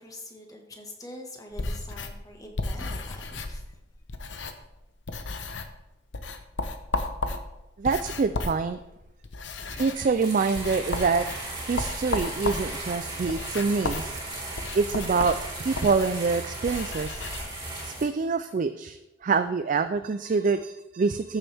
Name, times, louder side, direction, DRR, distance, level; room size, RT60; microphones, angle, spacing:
voice 1, 0.0-3.6, left 1 dB, 20° left, 2 dB, 1.6 m, -44 dB
sound 1, 1.5-4.8 5.0-5.8 6.1-17.4, left 3 dB, 75° left, 0.9 m, -34 dB
voice 2, 7.8-8.8 9.8-11.3 11.6-14.2 14.7-17.3 17.8-21.4, right 4 dB, 45° right, 10 dB, 0.4 m, -26 dB
sound 2, 9.7-18.0, right 2 dB, 20° right, 3.2 m, -36 dB
14.0 x 7.2 x 3.5 m, 0.93 s
head